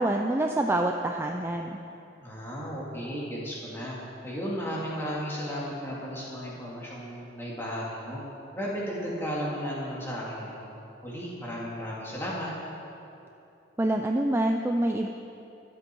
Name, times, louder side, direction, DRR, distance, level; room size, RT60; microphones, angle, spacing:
voice 1, 0.0-1.8 13.8-15.1, right 1 dB, 10° right, 3 dB, 0.4 m, -26 dB
voice 2, 2.2-4.0 4.2-8.2 8.5-10.7 11.0-12.5, equal, 10° left, -6 dB, 2.6 m, -34 dB
23.0 x 8.0 x 4.6 m, 2.8 s
head